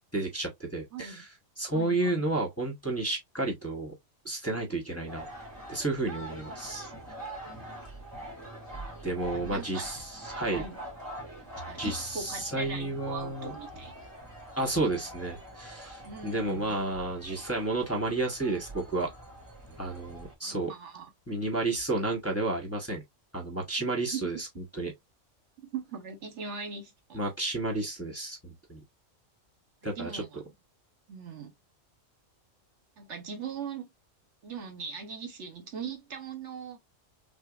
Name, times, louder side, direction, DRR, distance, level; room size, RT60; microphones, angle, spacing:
voice 1, 0.1-1.2 1.6-3.9 4.2-5.3 5.7-6.9 9.0-10.6 11.8-13.5 14.6-19.1 19.8-20.7 21.3-23.0 23.3-24.5 24.7-24.9 27.1-28.8 29.8-30.2, right 2 dB, 10° left, 1.0 m, -31 dB
voice 2, 0.9-1.2 1.7-2.2 7.5-7.6 9.3-9.8 10.5-10.8 11.6-13.9 16.0-16.8 20.4-21.1 23.8-24.4 25.6-27.2 29.8-30.4 31.1-31.5 33.0-33.9 34.4-36.8, right 6 dB, 65° right, 1.3 m, -40 dB
sound 1, 5.1-20.3, right 1 dB, 15° right, 2.4 m, -44 dB
6.2 x 2.3 x 2.4 m
omnidirectional pair, 1.3 m